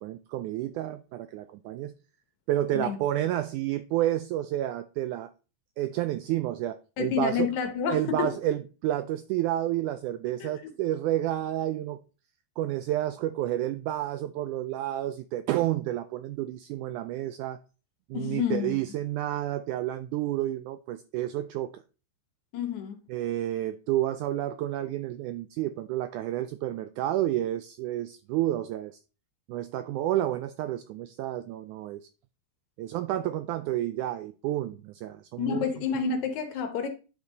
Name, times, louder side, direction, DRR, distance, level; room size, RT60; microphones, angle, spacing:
voice 1, 0.0-1.9 2.5-5.3 5.8-7.5 7.9-12.0 12.6-17.6 18.1-21.8 23.1-29.0 29.5-32.0 32.8-35.7, right 13 dB, 90° right, 1.7 m, -30 dB
voice 2, 7.0-8.4 10.4-10.7 18.1-18.8 22.5-23.0 35.4-36.9, left 6 dB, 70° left, 2.0 m, -29 dB
10.0 x 6.0 x 4.0 m
omnidirectional pair, 4.1 m